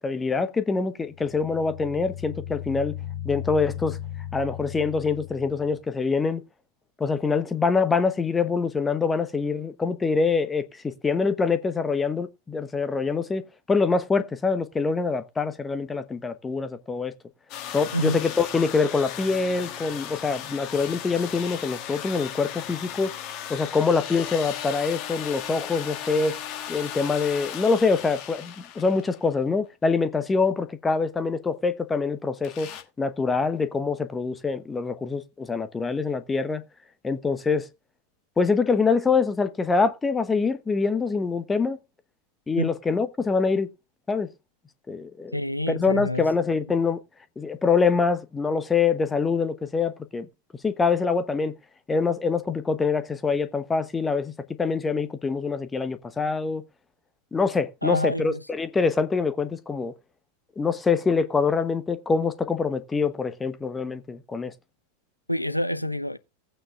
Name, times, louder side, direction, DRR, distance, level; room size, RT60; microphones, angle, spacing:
voice 1, 0.0-3.0 3.2-4.0 4.3-6.4 7.0-17.1 17.7-23.1 23.5-26.4 26.7-32.7 33.0-36.6 37.0-37.7 38.4-41.8 42.5-43.7 44.1-44.3 44.9-45.4 45.7-47.0 47.4-50.3 50.6-51.5 51.9-54.3 54.6-56.6 57.3-59.9 60.6-64.5, left 4 dB, 15° left, 0.9 m, -25 dB
sound 1, 1.0-5.8, left 11 dB, 90° right, 2.9 m, -36 dB
sound 2, 17.5-29.3 32.4-32.8, left 10 dB, 40° left, 1.4 m, -36 dB
voice 2, 45.3-46.3 57.8-58.4 65.3-66.2, left 1 dB, 90° left, 0.6 m, -27 dB
16.5 x 8.9 x 2.4 m
figure-of-eight pair, 90°, 0 cm